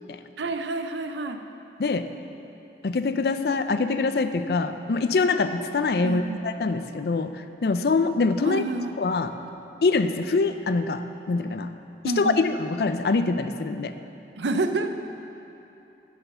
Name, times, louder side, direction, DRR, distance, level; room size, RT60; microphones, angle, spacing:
voice 1, 0.4-1.4 6.0-6.4 8.4-8.9 12.0-12.4 14.4-15.0, right 2 dB, 90° right, 7 dB, 0.6 m, -28 dB
voice 2, 2.8-7.3 7.6-8.6 9.0-9.3 9.8-11.7 12.0-13.9, left 3 dB, 65° left, 10 dB, 0.4 m, -24 dB
8.6 x 6.7 x 6.7 m, 2.9 s
head